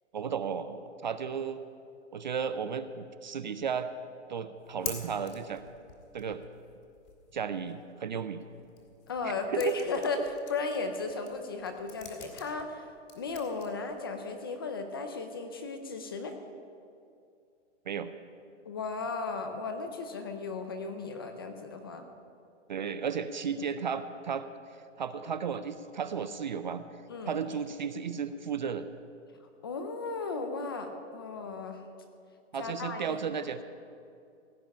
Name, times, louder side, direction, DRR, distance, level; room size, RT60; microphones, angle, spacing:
voice 1, 0.1-1.6 2.1-3.9 4.3-5.6 6.1-6.4 7.3-8.4 9.5-9.9 17.9-18.1 22.7-24.5 25.0-26.8 27.3-28.9 32.5-33.6, right 6 dB, 40° right, 12 dB, 0.4 m, -34 dB
sound 1, 4.6-14.4, left 7 dB, 45° left, 2.6 m, -47 dB
voice 2, 9.1-12.8 13.2-16.4 18.7-22.1 27.1-27.4 29.6-31.8 32.6-33.2, left 4 dB, 20° left, 6 dB, 0.5 m, -35 dB
16.5 x 5.6 x 10.0 m, 2.4 s
hypercardioid pair, 165°, 37 cm